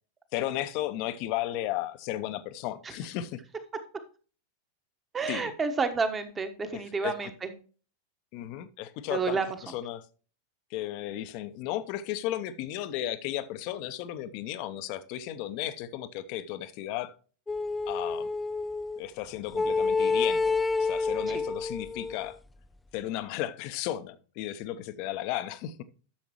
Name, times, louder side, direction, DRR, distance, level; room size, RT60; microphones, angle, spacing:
voice 1, 0.3-3.4 5.3-5.5 6.7-7.3 8.3-10.0 10.7-17.1 17.9-18.3 19.0-22.4 22.9-25.8, left 13 dB, 45° left, 0.8 m, -34 dB
voice 2, 5.1-7.5 9.1-9.4 21.3-21.4, right 4 dB, 20° right, 1.2 m, -30 dB
sound 1, 17.5-19.0 19.5-22.3, left 4 dB, 10° left, 0.3 m, -28 dB
11.5 x 7.0 x 3.0 m
figure-of-eight pair, 90°, 0 cm